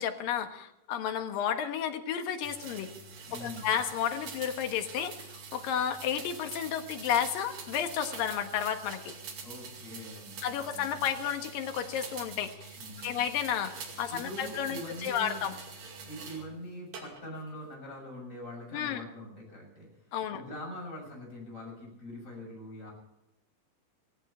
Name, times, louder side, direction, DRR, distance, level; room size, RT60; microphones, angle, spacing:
voice 1, 0.0-2.9 3.4-9.2 10.4-12.8 13.0-15.5 18.7-19.0 20.1-20.4, left 9 dB, 85° left, 7 dB, 3.1 m, -32 dB
sound 1, 2.4-16.5 16.9-17.5, right 5 dB, 75° right, 4.1 m, -45 dB
voice 2, 3.2-3.8 9.4-11.1 12.8-13.2 14.1-15.4 16.1-22.9, left 1 dB, 20° left, -1 dB, 7.1 m, -43 dB
17.5 x 16.5 x 4.4 m, 0.89 s
omnidirectional pair, 3.9 m